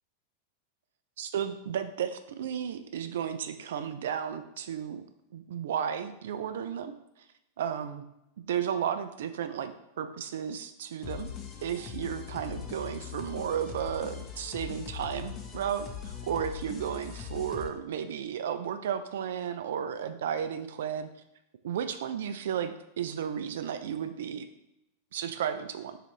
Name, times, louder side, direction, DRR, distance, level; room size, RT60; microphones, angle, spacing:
voice 1, 1.2-5.0 5.3-6.9 7.6-8.0 8.4-11.3 11.6-21.1 21.6-24.5 25.1-26.0, right 8 dB, 60° right, 9 dB, 0.3 m, -33 dB
sound 1, 11.0-17.7, left 8 dB, 30° left, 0.6 m, -41 dB
4.7 x 2.4 x 3.3 m, 0.87 s
figure-of-eight pair, 90°, 0 cm